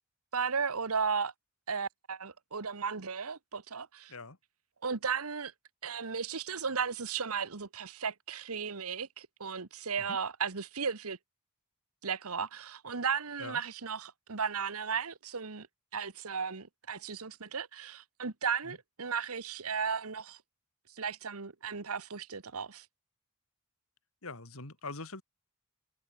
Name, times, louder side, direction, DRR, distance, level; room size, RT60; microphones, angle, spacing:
voice 1, 0.3-1.3 1.7-4.1 4.8-5.5 5.8-11.2 12.0-15.7 15.9-20.4 21.0-22.8, right 6 dB, 80° right, 1.4 m, -35 dB
voice 2, 24.2-25.2, left 3 dB, 70° left, 2.9 m, -43 dB
head